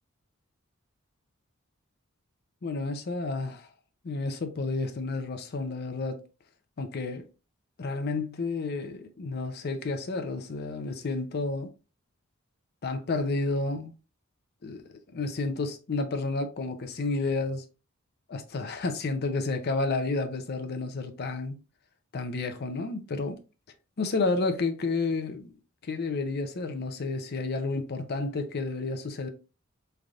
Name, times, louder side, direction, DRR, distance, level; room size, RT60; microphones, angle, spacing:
voice 1, 2.6-3.7 4.0-6.2 6.8-7.2 7.8-11.7 12.8-13.9 14.6-14.8 15.1-17.6 18.3-21.6 22.1-23.4 24.0-25.5 25.8-29.3, left 3 dB, 50° left, 0.5 m, -31 dB
3.9 x 3.3 x 2.4 m
head